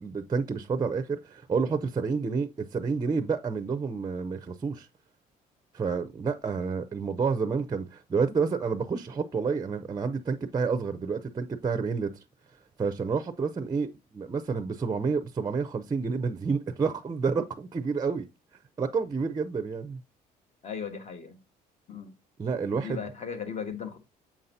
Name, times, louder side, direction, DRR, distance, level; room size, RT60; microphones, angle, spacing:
voice 1, 0.0-4.9 5.7-12.1 12.8-18.3 18.8-20.0 22.4-23.0, right 5 dB, 20° right, 0.5 m, -29 dB
voice 2, 20.6-21.4 21.9-22.1 22.7-24.0, left 7 dB, 40° left, 1.4 m, -37 dB
7.2 x 5.6 x 2.7 m
cardioid pair, 110°, 17 cm